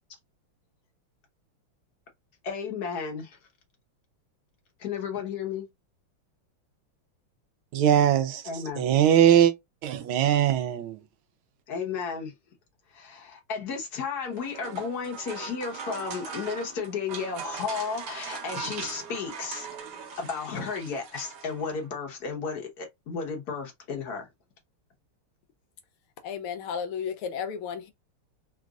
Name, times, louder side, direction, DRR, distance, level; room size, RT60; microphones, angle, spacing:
voice 1, 2.4-3.4 4.8-5.7 8.4-8.8 11.7-12.3 12.9-19.7 20.2-24.3, left 5 dB, 55° left, 1.4 m, -33 dB
voice 2, 7.7-8.4 8.8-9.5 9.8-11.0, right 10 dB, 80° right, 1.4 m, -21 dB
sound 1, 14.2-21.9, right 6 dB, 60° right, 1.4 m, -40 dB
voice 3, 26.2-27.9, left 7 dB, 85° left, 1.5 m, -33 dB
3.9 x 2.5 x 2.3 m
omnidirectional pair, 2.4 m